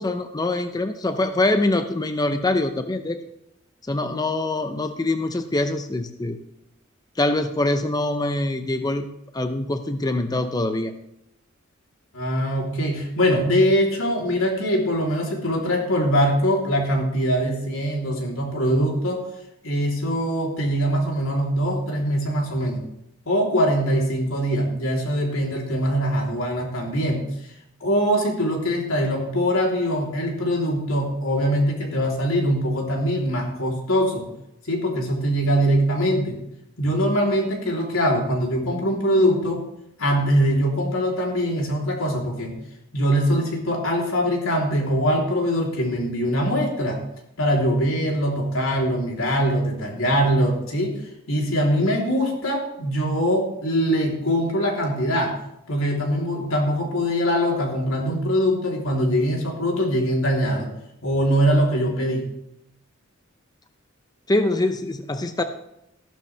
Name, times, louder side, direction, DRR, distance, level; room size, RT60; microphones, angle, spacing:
voice 1, 0.0-3.2 3.9-6.4 7.2-9.1 9.3-10.9 64.3-65.4, left 2 dB, 20° left, 8 dB, 0.6 m, -24 dB
voice 2, 12.1-19.2 19.6-22.8 23.2-27.2 27.8-34.3 34.7-36.4 36.8-39.6 40.0-42.5 42.9-47.0 47.4-50.9 51.3-55.4 55.7-60.7 61.0-62.2, equal, 90° left, -1 dB, 3.4 m, -22 dB
14.5 x 12.0 x 3.3 m, 0.81 s
head